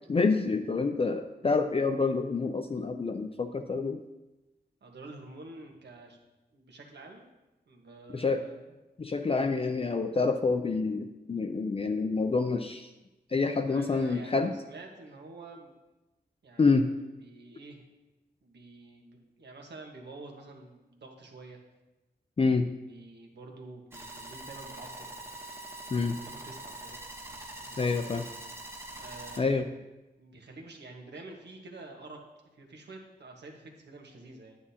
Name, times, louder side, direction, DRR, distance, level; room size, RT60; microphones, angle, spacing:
voice 1, 0.1-4.0 8.1-8.4 9.0-12.9 13.3-14.5 16.6-16.9 22.4-22.7 25.9-26.2 27.8-28.2 29.4-29.7, left 4 dB, 35° left, 6 dB, 0.4 m, -27 dB
voice 2, 4.8-6.2 6.5-7.2 7.7-8.8 13.6-15.7 16.4-16.9 17.2-17.8 18.4-21.6 22.9-25.1 25.9-27.0 27.6-28.0 29.0-29.7 30.2-32.2 32.5-34.6, right 2 dB, 85° right, 1 dB, 1.4 m, -48 dB
sound 1, 23.9-29.4, right 1 dB, 15° right, 1.1 m, -44 dB
9.6 x 8.4 x 2.8 m, 1.0 s
wide cardioid pair, 90°, 17 cm